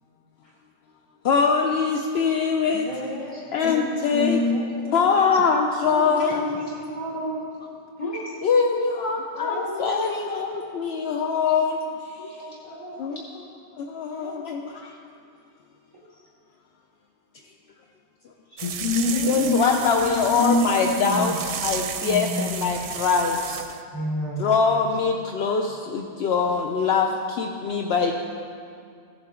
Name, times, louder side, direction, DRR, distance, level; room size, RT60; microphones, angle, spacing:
voice 1, 1.2-4.4 4.9-6.6 8.4-12.4 13.0-15.0 19.1-23.6 24.4-28.1, left 5 dB, 70° left, 2 dB, 0.8 m, -23 dB
voice 2, 2.7-3.4 4.5-5.0 5.8-7.4 9.4-11.0 12.4-13.0 14.1-14.4 18.9-19.5 20.3-20.6 21.0-21.4 22.0-22.5 23.9-24.4, equal, 20° left, -6 dB, 3.0 m, -33 dB
voice 3, 3.6-4.9 6.0-6.2 8.0-8.4 12.2-12.3 18.5-19.9 20.4-20.9, left 3 dB, 35° left, -3 dB, 0.8 m, -26 dB
sound 1, 18.6-23.8, right 8 dB, 60° right, 0.7 m, -33 dB
15.5 x 7.4 x 3.7 m, 2.3 s
omnidirectional pair, 1.1 m